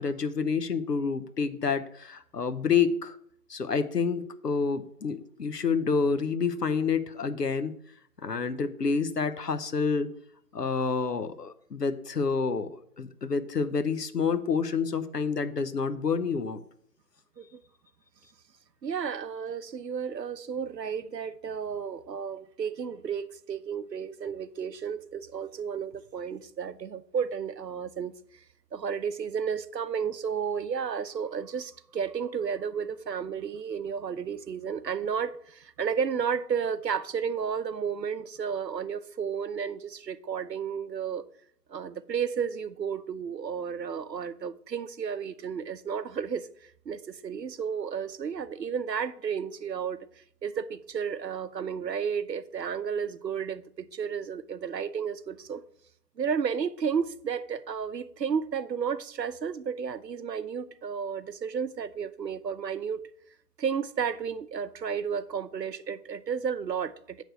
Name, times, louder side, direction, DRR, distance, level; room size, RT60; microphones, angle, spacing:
voice 1, 0.0-3.2 3.5-7.7 8.2-10.1 10.5-16.6, left 5 dB, 75° left, 0.8 m, -28 dB
voice 2, 18.8-28.1 28.7-41.2 41.7-50.0 50.4-55.6 56.2-63.0 63.6-67.2, right 7 dB, 85° right, 0.7 m, -32 dB
8.0 x 3.3 x 6.3 m
figure-of-eight pair, 170°, 49 cm